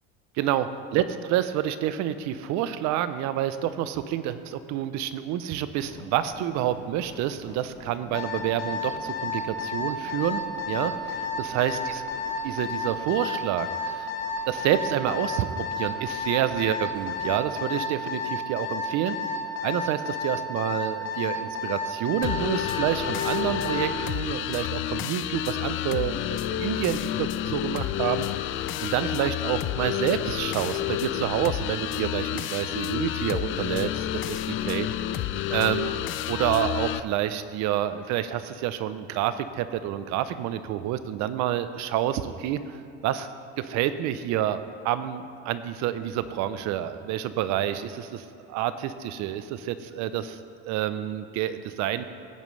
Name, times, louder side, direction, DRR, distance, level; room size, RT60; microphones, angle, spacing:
voice 1, 0.4-10.4 10.7-12.0 12.4-14.1 14.5-19.2 19.6-28.3 28.8-34.9 35.5-35.9 36.3-43.3 43.6-44.6 44.8-50.4 50.6-52.0, right 11 dB, 55° right, 12 dB, 0.7 m, -28 dB
sound 1, 5.6-17.2, left 3 dB, 15° left, 2.2 m, -48 dB
Alarm, 8.1-23.9, left 5 dB, 70° left, 1.8 m, -31 dB
sound 2, 22.2-37.0, left 12 dB, 40° left, 0.4 m, -30 dB
16.0 x 9.0 x 3.3 m, 2.4 s
supercardioid pair, 110°, 33 cm